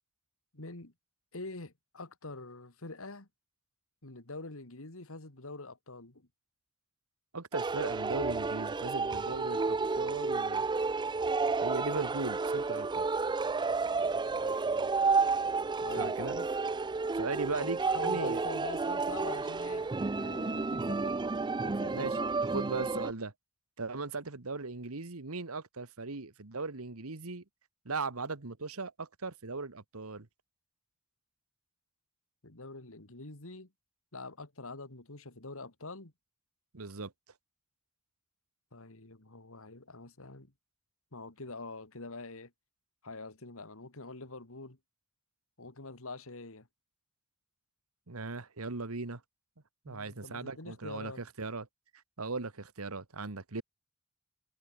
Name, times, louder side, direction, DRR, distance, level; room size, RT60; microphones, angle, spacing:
voice 1, 0.5-0.9 1.3-3.3 4.0-6.3 13.9-15.0 15.8-16.5 17.5-19.9 20.1-21.2 21.6-22.4 32.4-33.7 34.1-36.1 38.7-40.5 41.1-42.5 43.0-44.8 45.6-46.7 49.9-51.2, left 3 dB, 70° left, 2.5 m, -45 dB
voice 2, 7.3-10.7 11.6-13.1 16.0-16.4 17.1-18.4 21.9-22.2 22.5-23.3 23.8-27.4 27.8-30.3 36.7-37.1 48.1-49.2 49.8-51.7 52.2-53.6, right 3 dB, 75° right, 1.5 m, -38 dB
sound 1, 7.5-23.1, right 4 dB, 20° right, 0.5 m, -31 dB
head